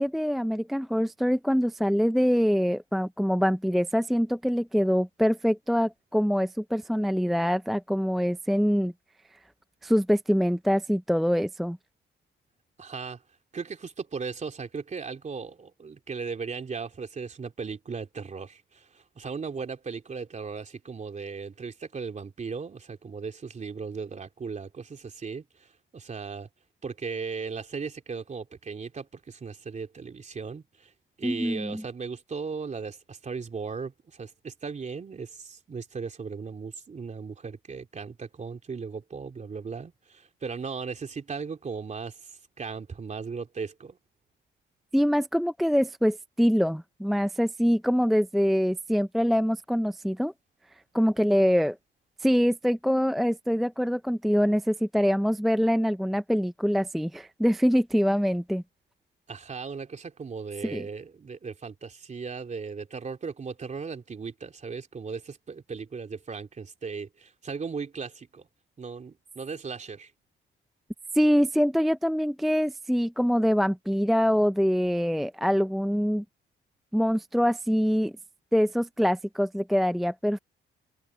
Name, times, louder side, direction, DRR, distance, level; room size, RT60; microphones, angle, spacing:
voice 1, 0.0-8.9 9.8-11.8 31.2-31.8 44.9-50.3 50.9-51.8 52.2-58.6 60.6-60.9 71.1-76.2 76.9-78.1 78.5-80.4, equal, ahead, 0.5 m, -24 dB
voice 2, 12.8-13.2 13.5-26.5 26.8-30.9 31.2-44.0 59.3-68.5 68.8-70.1, right 5 dB, 35° right, 3.2 m, -37 dB
cardioid pair, 90°, 20 cm